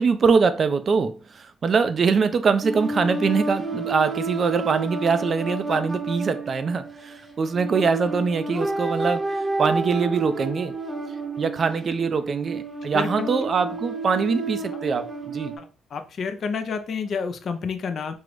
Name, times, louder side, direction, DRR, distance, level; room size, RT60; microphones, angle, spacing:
voice 1, 0.0-10.8 11.4-15.5, right 5 dB, 45° right, 0.4 m, -23 dB
sound 1, 2.6-15.6, right 2 dB, 25° right, 0.7 m, -30 dB
voice 2, 12.9-13.3 15.6-18.1, left 5 dB, 55° left, 0.5 m, -29 dB
3.7 x 2.0 x 3.0 m
cardioid pair, 90°, 0 cm